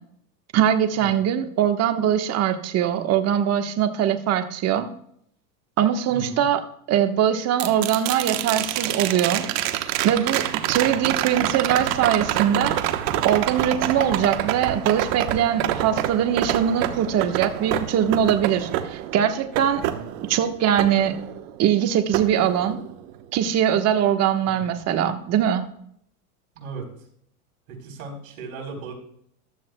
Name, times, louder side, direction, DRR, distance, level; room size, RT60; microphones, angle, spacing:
voice 1, 0.5-4.9 5.8-6.6 6.9-9.5 10.0-12.8 13.2-19.8 20.3-21.2 21.6-22.8 23.3-25.6, right 9 dB, 35° right, 7 dB, 1.3 m, -22 dB
voice 2, 6.1-6.4 10.8-10.9 19.8-20.1 24.4-24.7 26.6-26.9 27.7-28.9, right 4 dB, 75° right, 0 dB, 4.1 m, -37 dB
sound 1, 7.6-21.7 22.1-23.2 25.4-25.5, right 12 dB, 60° right, 1.2 m, -27 dB
15.0 x 12.0 x 2.3 m, 0.68 s
supercardioid pair, 125°, 44 cm